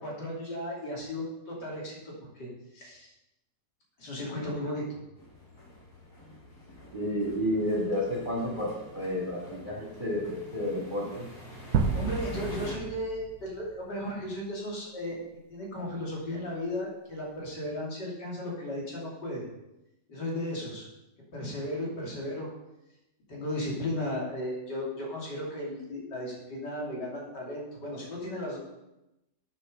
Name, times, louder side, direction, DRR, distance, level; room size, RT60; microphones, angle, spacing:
voice 1, 0.0-2.1 2.4-3.1 4.0-5.0 11.9-15.2 15.5-19.4 20.1-20.9 21.3-22.5 23.3-28.6, left 1 dB, 85° left, -4 dB, 3.5 m, -35 dB
sound 1, 5.1-12.7, left 1 dB, 65° left, 3.5 m, -46 dB
voice 2, 6.9-11.3, left 1 dB, 30° right, -3 dB, 2.8 m, -31 dB
sound 2, 11.7-13.7, right 5 dB, 70° right, 1.2 m, -30 dB
8.6 x 6.9 x 6.6 m, 0.92 s
omnidirectional pair, 1.8 m